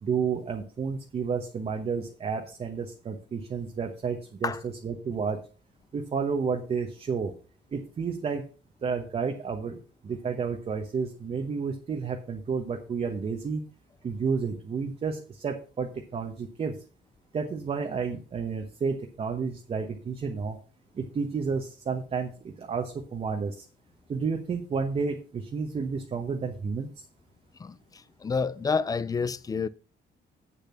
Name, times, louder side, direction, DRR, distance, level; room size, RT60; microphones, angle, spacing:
voice 1, 0.0-4.5 4.8-5.4 5.9-7.3 7.7-8.4 8.8-9.8 10.0-13.6 14.0-16.7 17.3-20.6 20.9-23.6 24.1-27.0, right 5 dB, 35° right, 1.1 m, -31 dB
voice 2, 27.6-29.7, left 5 dB, 20° left, 0.4 m, -29 dB
8.3 x 7.0 x 5.6 m
cardioid pair, 165°, 19 cm